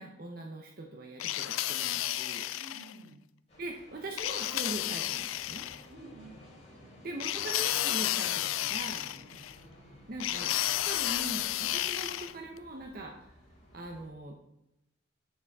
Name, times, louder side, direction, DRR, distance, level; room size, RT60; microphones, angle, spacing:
voice 1, 0.0-2.5 3.6-5.7 7.0-9.1 10.1-10.5 10.8-13.3 13.7-14.4, right 1 dB, 50° right, 1 dB, 0.8 m, -41 dB
sound 1, 1.2-2.9 4.2-5.8 7.2-9.5 10.2-12.3, left 14 dB, 90° left, 0.3 m, -32 dB
voice 2, 2.5-3.2 5.9-7.4 9.1-9.4, right 1 dB, 85° right, -2 dB, 2.7 m, -53 dB
sound 2, 3.5-14.1, equal, 35° left, 3.1 m, -55 dB
7.4 x 7.1 x 3.6 m, 0.87 s
head